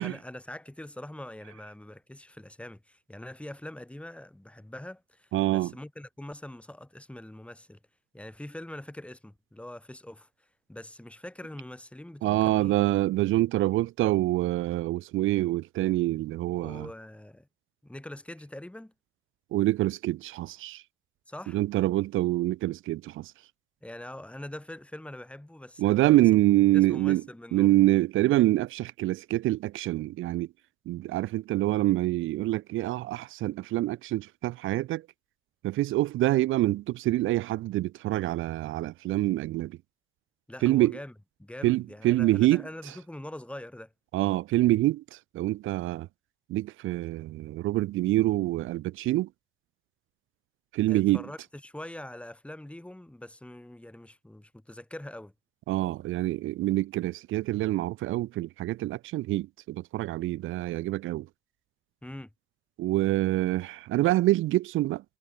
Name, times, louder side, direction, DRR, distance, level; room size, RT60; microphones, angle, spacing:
voice 1, 0.0-7.8 8.1-12.7 16.5-17.5 17.8-18.9 21.3-21.6 23.8-26.2 26.7-27.7 40.5-41.1 41.4-43.9 50.9-55.3 62.0-62.3, left 1 dB, 5° left, 2.4 m, -43 dB
voice 2, 5.3-5.7 12.2-16.9 19.5-20.8 21.5-23.3 25.8-27.2 27.5-30.5 30.9-35.0 35.6-39.8 40.6-41.0 41.6-42.6 44.1-46.1 46.5-49.3 50.7-51.2 55.7-61.3 62.8-65.0, right 16 dB, 85° right, 0.8 m, -26 dB
cardioid pair, 90°, 20 cm